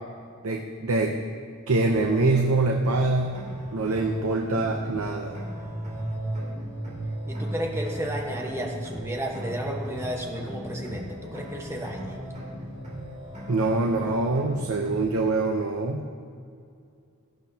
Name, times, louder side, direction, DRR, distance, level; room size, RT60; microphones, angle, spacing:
voice 1, 0.4-1.2 1.7-3.4 3.7-5.3 13.5-16.0, right 2 dB, 90° right, 2 dB, 0.8 m, -24 dB
sound 1, 1.9-15.1, right 1 dB, 35° right, 3.1 m, -36 dB
voice 2, 6.4-6.8 7.3-12.2, equal, 15° right, 0 dB, 1.2 m, -33 dB
17.5 x 12.0 x 2.8 m, 2.3 s
head